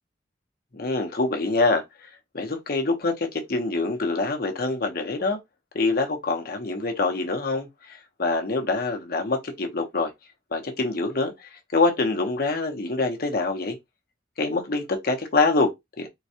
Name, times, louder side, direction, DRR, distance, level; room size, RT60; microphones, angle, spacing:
voice 1, 0.7-5.4 5.7-10.1 10.5-13.8 14.4-16.1, left 3 dB, 55° left, 0.9 m, -25 dB
3.9 x 2.2 x 2.7 m
head